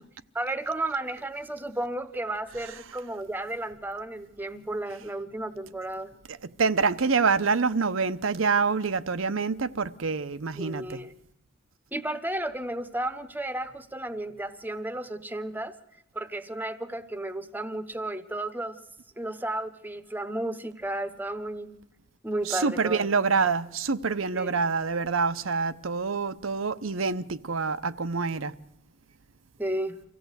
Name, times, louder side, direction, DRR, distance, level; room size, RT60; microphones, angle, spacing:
voice 1, 0.3-6.1 10.5-11.1 11.9-15.8 16.1-18.8 19.2-21.7 22.2-23.1 24.3-24.6 29.6-30.0, right 1 dB, 10° right, 0.9 m, -33 dB
voice 2, 6.6-11.0 22.5-28.5, right 4 dB, 85° right, 0.8 m, -26 dB
24.5 x 16.0 x 8.1 m
head